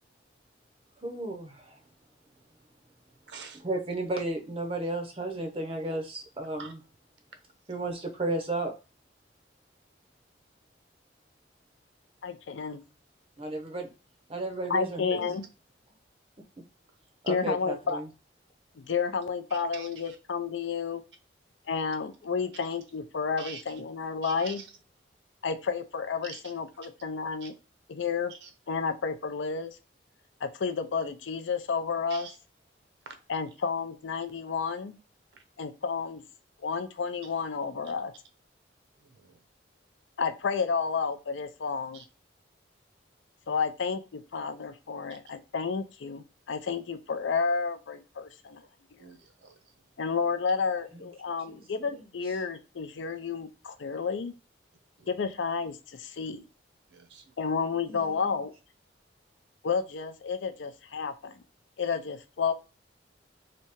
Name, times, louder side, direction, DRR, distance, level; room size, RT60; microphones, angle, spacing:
voice 1, 1.0-1.8 3.6-6.8 7.7-8.7 13.4-13.9 14.3-15.3 17.2-18.0 51.9-52.0 57.9-58.3, right 2 dB, 30° right, 0.5 m, -33 dB
voice 2, 3.3-3.6 6.6-6.7 15.1-15.4 19.5-20.2 23.4-23.8 24.2-24.7 26.2-26.5 26.8-26.9 27.4-27.5 28.3-28.5 32.1-32.4 33.1-33.2 35.3-35.4 39.0-39.4 41.9-42.0 49.0-49.6 55.0-55.1 56.9-57.4, right 5 dB, 70° right, 0.6 m, -46 dB
voice 3, 12.2-12.8 14.7-15.4 17.3-18.0 18.7-21.0 21.7-24.6 25.4-27.5 27.9-28.3 28.7-29.8 30.4-32.3 33.3-35.0 35.6-36.2 36.6-38.1 40.2-42.0 43.5-48.6 50.0-54.3 55.1-56.5 57.4-58.5 59.6-61.4 61.8-62.5, left 5 dB, 80° left, 0.5 m, -31 dB
3.3 x 2.8 x 2.9 m
head